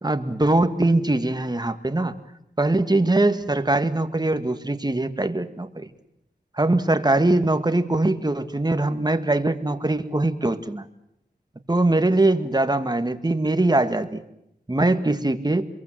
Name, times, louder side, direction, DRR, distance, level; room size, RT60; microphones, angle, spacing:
voice 1, 0.0-2.1 2.6-5.9 6.6-10.8 11.7-14.2 14.7-15.7, right 2 dB, 25° right, 9 dB, 1.9 m, -22 dB
27.0 x 22.5 x 7.7 m, 0.79 s
wide cardioid pair, 70°, 18 cm